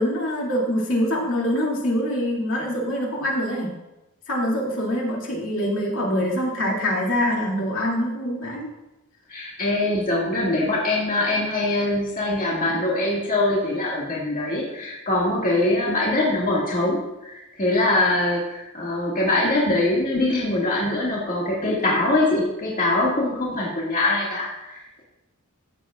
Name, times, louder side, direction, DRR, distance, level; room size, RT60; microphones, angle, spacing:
voice 1, 0.0-3.7 4.3-8.7, equal, 60° left, -3 dB, 2.4 m, -24 dB
voice 2, 9.3-25.0, left 2 dB, 40° left, -5 dB, 2.0 m, -23 dB
14.5 x 8.0 x 2.4 m, 0.94 s
head